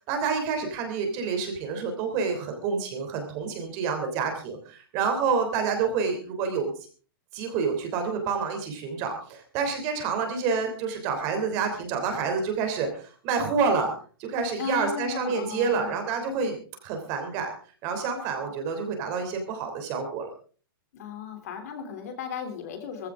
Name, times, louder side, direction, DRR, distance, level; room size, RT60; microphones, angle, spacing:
voice 1, 0.1-6.7 7.3-13.9 14.2-17.5 17.8-20.3, right 5 dB, 25° right, 5 dB, 3.2 m, -28 dB
voice 2, 14.6-16.0 20.9-23.1, left 7 dB, 40° left, 6 dB, 3.1 m, -35 dB
18.0 x 15.0 x 3.7 m, 0.40 s
hypercardioid pair, 175°, 12 cm